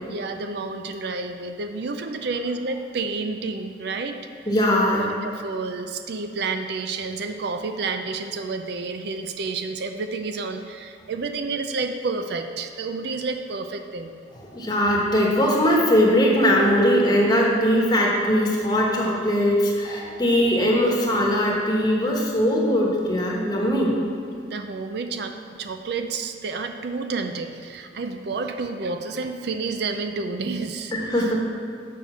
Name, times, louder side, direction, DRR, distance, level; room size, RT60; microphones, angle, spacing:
voice 1, 0.1-4.5 5.0-14.2 24.5-31.3, right 4 dB, 60° right, 6 dB, 0.4 m, -30 dB
voice 2, 4.5-5.1 14.5-24.0 30.9-31.4, equal, 25° left, -2 dB, 1.2 m, -20 dB
6.8 x 5.3 x 6.1 m, 2.2 s
head